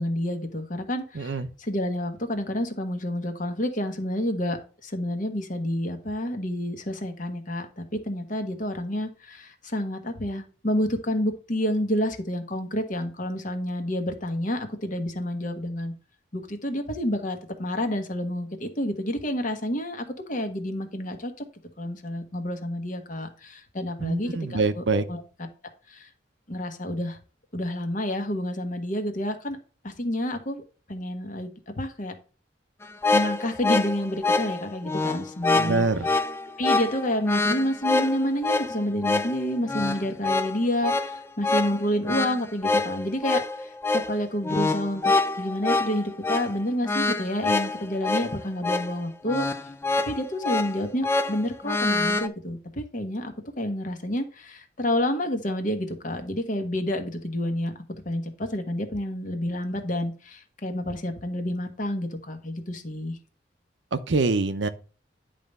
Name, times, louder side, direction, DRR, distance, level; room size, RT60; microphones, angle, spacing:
voice 1, 0.0-1.3 1.7-4.6 4.8-15.9 16.3-21.3 21.8-25.2 25.9-26.1 26.5-27.2 27.5-29.6 29.8-30.6 30.9-32.1 33.1-35.8 36.6-49.5 50.1-57.7 58.0-63.2, left 1 dB, 45° left, 1.2 m, -29 dB
voice 2, 1.1-1.5 24.0-25.1 35.5-36.1 63.9-64.7, right 3 dB, 80° right, 0.7 m, -25 dB
sound 1, 32.8-52.3, left 3 dB, 15° left, 0.4 m, -26 dB
10.0 x 3.4 x 5.3 m
head